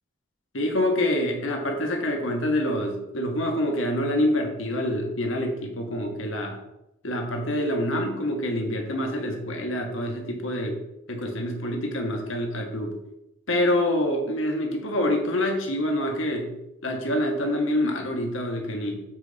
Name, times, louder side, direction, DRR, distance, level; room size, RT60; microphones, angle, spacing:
voice 1, 0.5-6.6 7.0-10.8 11.1-13.0 13.5-16.5 16.8-19.0, left 1 dB, 85° left, 2 dB, 1.5 m, -26 dB
8.0 x 5.0 x 4.0 m, 0.88 s
head